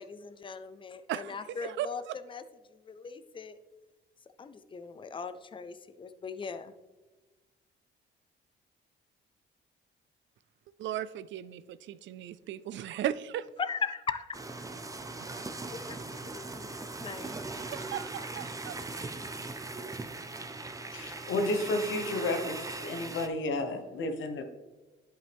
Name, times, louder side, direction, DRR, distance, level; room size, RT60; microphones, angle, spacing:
voice 1, 0.0-2.0 2.3-2.4 2.9-3.5 4.4-6.7 13.6-14.7 15.4-15.5 15.7-17.6, left 5 dB, 25° left, 11 dB, 0.5 m, -39 dB
voice 2, 1.1-2.1 10.8-13.5 15.3-15.7 17.2-18.7, right 11 dB, 70° right, 16 dB, 0.4 m, -37 dB
sound 1, 14.3-23.3, right 3 dB, 15° right, 0.7 m, -40 dB
voice 3, 20.9-24.4, left 2 dB, 75° left, 6 dB, 1.1 m, -32 dB
10.5 x 5.6 x 3.5 m, 1.2 s
cardioid pair, 90°, 20 cm